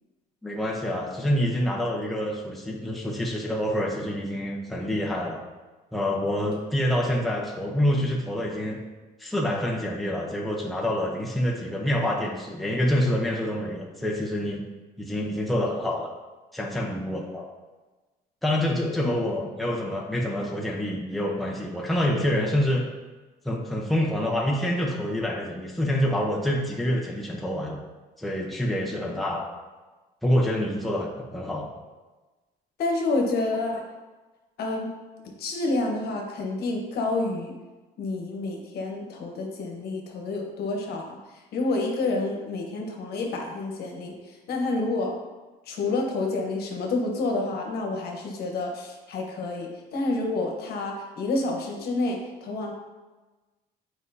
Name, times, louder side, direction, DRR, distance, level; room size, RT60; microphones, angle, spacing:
voice 1, 0.4-5.4 5.9-8.8 9.2-14.6 15.0-16.1 16.5-17.4 18.4-22.8 23.4-27.8 28.2-29.5 30.2-31.7, left 1 dB, ahead, -2 dB, 0.9 m, -27 dB
voice 2, 32.8-33.8 34.6-34.9 35.4-37.5 38.0-41.2 41.5-45.1 45.7-52.7, left 2 dB, 70° left, 1 dB, 1.2 m, -29 dB
7.5 x 4.7 x 2.8 m, 1.2 s
cardioid pair, 110°, 17 cm